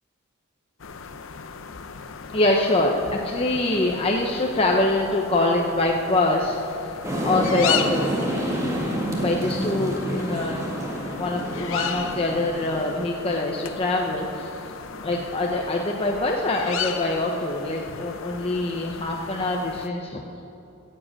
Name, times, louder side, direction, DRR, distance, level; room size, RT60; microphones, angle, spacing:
sound 1, 0.8-19.9, left 7 dB, 70° left, 0.7 m, -35 dB
voice 1, 2.3-6.6 7.2-8.1 9.1-10.8 11.1-14.5 15.0-20.2, left 2 dB, 30° left, 0 dB, 0.8 m, -24 dB
sound 2, 7.0-13.1, equal, 15° right, 1.9 m, -28 dB
14.5 x 7.7 x 8.5 m, 2.8 s
head